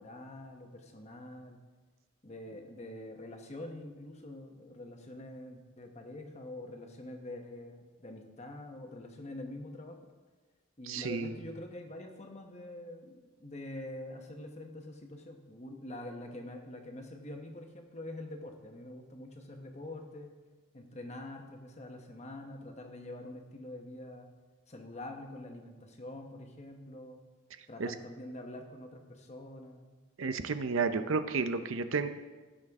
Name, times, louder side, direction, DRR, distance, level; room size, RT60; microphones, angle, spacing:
voice 1, 0.0-1.6 2.2-10.0 10.8-20.3 20.7-24.3 24.7-27.2 27.7-29.9, left 1 dB, 35° left, 3 dB, 1.1 m, -45 dB
voice 2, 10.9-11.3 27.8-27.9 30.2-32.1, right 4 dB, 85° right, 10 dB, 0.6 m, -31 dB
15.5 x 6.4 x 3.6 m, 1.3 s
head